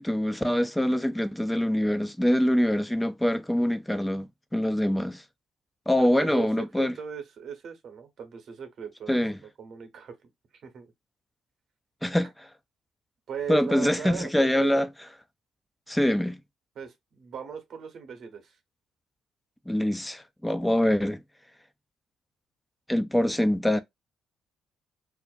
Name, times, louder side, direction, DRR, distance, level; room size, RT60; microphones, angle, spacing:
voice 1, 0.0-5.2 5.9-6.9 9.1-9.4 12.0-12.5 13.5-14.9 15.9-16.4 19.7-21.2 22.9-23.8, left 1 dB, 10° left, 0.3 m, -24 dB
voice 2, 6.0-10.2 10.6-10.9 13.3-14.9 16.7-18.6, right 7 dB, 60° right, 0.8 m, -38 dB
2.4 x 2.1 x 2.4 m
supercardioid pair, 55°, 0 cm